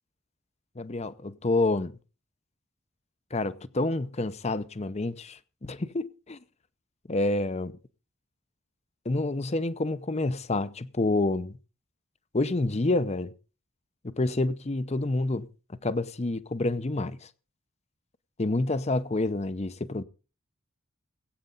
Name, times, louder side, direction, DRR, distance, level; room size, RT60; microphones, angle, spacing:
voice 1, 0.8-1.9 3.3-6.4 7.1-7.7 9.0-11.6 12.3-13.3 14.0-15.5 15.8-17.3 18.4-20.0, left 2 dB, 30° left, 0.7 m, -28 dB
20.5 x 8.8 x 3.9 m
head